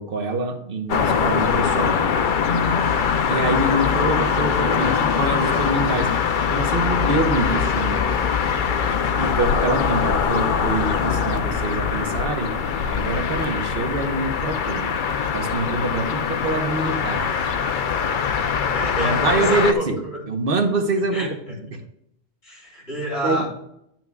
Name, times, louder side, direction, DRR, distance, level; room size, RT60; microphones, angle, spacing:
voice 1, 0.0-2.0 3.3-6.1 6.5-8.4 9.1-12.6 12.9-14.9 15.3-17.6 19.0-20.0 20.3-21.3 21.7-21.8 23.2-23.4, right 2 dB, 65° right, 5 dB, 1.1 m, -25 dB
sound 1, 0.9-19.7, left 6 dB, 60° left, 0.7 m, -22 dB
voice 2, 18.4-19.9 21.1-21.5 22.4-23.5, right 1 dB, 75° left, -4 dB, 3.4 m, -29 dB
11.0 x 9.0 x 2.3 m, 0.78 s
omnidirectional pair, 1.0 m